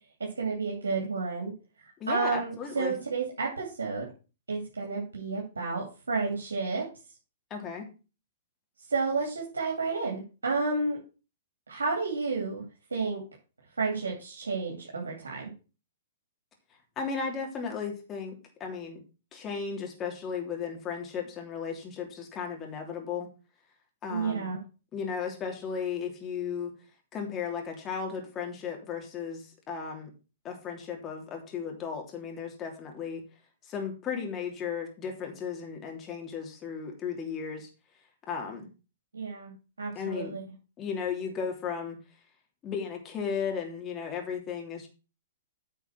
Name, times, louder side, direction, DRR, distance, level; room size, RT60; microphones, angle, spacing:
voice 1, 0.2-1.5 2.1-4.1 4.5-6.9 8.9-11.0 11.7-12.6 12.9-13.2 13.8-15.5 24.1-24.6 39.1-39.5 39.8-40.4, right 4 dB, 80° right, -2 dB, 2.8 m, -31 dB
voice 2, 2.0-3.0 7.5-7.9 17.0-18.3 18.6-19.0 19.3-23.3 24.0-24.5 24.9-26.7 27.1-30.1 30.4-33.2 33.6-37.7 38.3-38.7 39.9-40.3 40.8-42.0 42.6-44.9, left 6 dB, 25° left, 2 dB, 3.0 m, -35 dB
9.3 x 5.8 x 5.8 m, 0.32 s
figure-of-eight pair, 115°, 0 cm